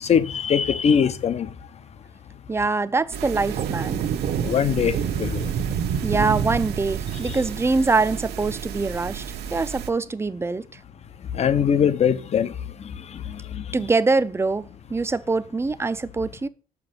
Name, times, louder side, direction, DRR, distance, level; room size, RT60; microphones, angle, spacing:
voice 1, 0.0-1.5 4.4-5.5 7.3-7.4 11.3-12.5 13.1-13.6, left 7 dB, 40° left, 0.8 m, -22 dB
voice 2, 2.5-4.0 6.0-9.2 9.5-10.8 13.7-16.5, right 3 dB, 15° right, 0.5 m, -24 dB
sound 1, 3.1-9.9, right 8 dB, 80° right, 1.1 m, -35 dB
sound 2, 3.3-8.9, right 8 dB, 55° right, 1.0 m, -29 dB
6.6 x 6.0 x 6.7 m
cardioid pair, 110°, 17 cm